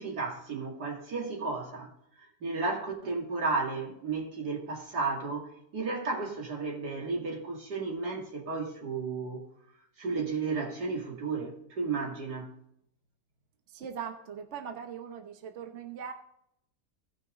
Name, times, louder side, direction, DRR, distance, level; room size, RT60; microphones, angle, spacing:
voice 1, 0.0-1.9 2.2-9.4 10.0-12.6, right 4 dB, 85° right, 2.9 m, -33 dB
voice 2, 13.7-16.1, right 7 dB, 50° right, 1.2 m, -40 dB
17.0 x 6.1 x 3.8 m
omnidirectional pair, 1.7 m